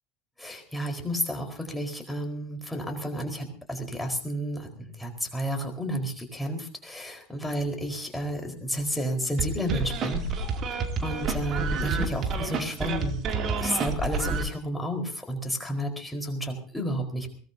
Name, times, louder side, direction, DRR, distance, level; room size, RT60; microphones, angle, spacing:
voice 1, 0.4-10.2 10.7-13.2 13.6-17.3, equal, 5° left, 2 dB, 4.5 m, -31 dB
sound 1, 9.4-14.4, right 4 dB, 40° right, 2.7 m, -29 dB
22.0 x 19.0 x 2.8 m, 0.43 s
figure-of-eight pair, 80°, 0 cm